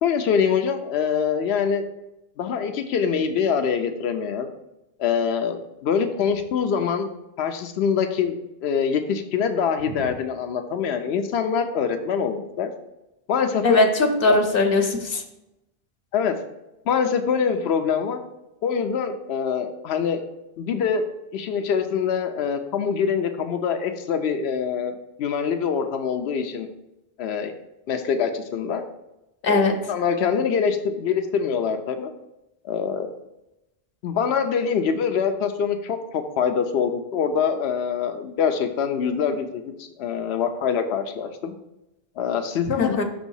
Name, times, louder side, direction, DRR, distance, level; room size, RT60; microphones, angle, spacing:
voice 1, 0.0-1.8 2.4-4.5 5.0-7.1 7.4-12.7 13.3-13.8 14.3-14.4 16.1-16.4 16.9-18.2 18.6-20.2 20.6-21.1 21.3-24.9 25.2-26.7 27.2-27.5 27.9-28.8 29.4-32.1 32.6-33.1 34.0-41.5 42.2-43.0, left 6 dB, 90° left, 7 dB, 0.9 m, -24 dB
voice 2, 13.6-15.2 29.4-29.7 42.8-43.0, left 2 dB, 65° left, 4 dB, 1.0 m, -20 dB
6.2 x 3.4 x 5.4 m, 0.93 s
omnidirectional pair, 1.0 m